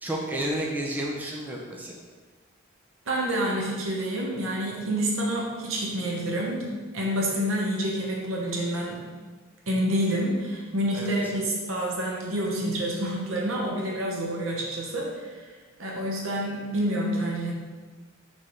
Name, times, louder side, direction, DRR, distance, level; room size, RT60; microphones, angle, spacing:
voice 1, 0.0-2.0 10.9-11.1, right 1 dB, 10° right, -3 dB, 0.4 m, -31 dB
voice 2, 3.1-9.0 9.7-15.1 15.8-17.5, right 1 dB, 75° right, -2 dB, 0.9 m, -28 dB
4.3 x 3.3 x 3.0 m, 1.4 s
head